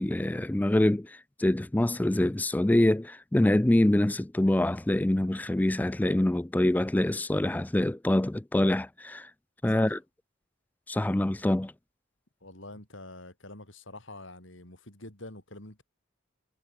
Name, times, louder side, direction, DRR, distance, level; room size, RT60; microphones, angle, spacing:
voice 1, 0.0-9.3 9.6-10.0 10.9-11.7, left 1 dB, 10° left, 0.3 m, -25 dB
voice 2, 12.4-15.8, left 2 dB, 60° left, 6.0 m, -46 dB
head